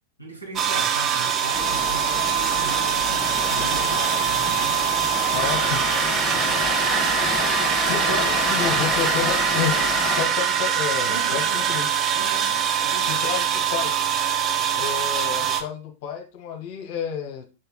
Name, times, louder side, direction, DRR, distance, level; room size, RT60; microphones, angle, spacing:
voice 1, 0.2-4.9 5.3-6.7 8.0-8.3 11.1-11.6 12.1-13.2, right 2 dB, 85° right, 2.8 m, -38 dB
sound 1, 0.6-15.6, right 9 dB, 25° right, 0.9 m, -23 dB
Thunder Rain, 1.5-10.2, left 4 dB, 20° left, 1.7 m, -29 dB
voice 2, 5.3-5.8 7.9-9.8 10.2-11.9 13.1-14.1 14.7-17.4, left 9 dB, 45° left, 1.9 m, -30 dB
7.2 x 6.6 x 2.2 m
figure-of-eight pair, 90°, 0 cm